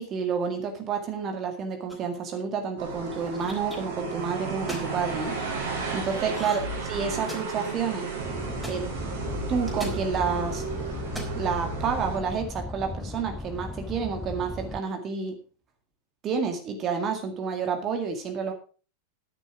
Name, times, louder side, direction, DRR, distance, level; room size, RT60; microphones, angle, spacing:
voice 1, 0.0-5.4 5.9-6.6 6.9-8.1 8.7-8.9 9.5-10.6 11.4-15.4 16.2-18.5, right 6 dB, 30° right, 5 dB, 2.1 m, -29 dB
sound 1, 1.9-2.2 3.1-3.8 4.5-4.9 6.3-6.8 7.0-7.7 8.6-8.8 9.7-10.0 11.0-11.4, right 1 dB, 5° right, 3.9 m, -38 dB
sound 2, 2.8-12.2, right 4 dB, 60° right, 7.3 m, -33 dB
sound 3, 8.2-14.8, left 3 dB, 10° left, 0.8 m, -37 dB
11.0 x 10.5 x 4.9 m, 0.36 s
figure-of-eight pair, 90°, 0 cm